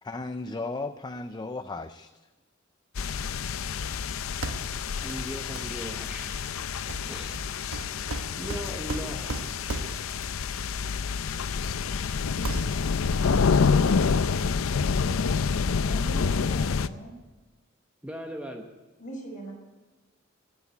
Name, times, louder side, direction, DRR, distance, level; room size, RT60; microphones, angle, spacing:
voice 1, 0.0-2.1, left 3 dB, 20° left, 10 dB, 0.4 m, -35 dB
sound 1, 2.9-16.9, left 5 dB, 80° left, 0.5 m, -27 dB
sound 2, 4.4-4.8 5.1-5.2 5.6-5.8 6.9-10.2 11.3-11.4 11.8-12.1 12.4-13.2, right 2 dB, 85° right, 1.2 m, -36 dB
voice 2, 5.0-6.4 7.1-7.4 8.4-9.6 18.0-18.7, equal, 5° right, 2 dB, 1.0 m, -38 dB
voice 3, 15.8-17.2 19.0-19.5, right 1 dB, 40° left, -2 dB, 5.9 m, -40 dB
20.5 x 7.2 x 9.1 m, 1.2 s
head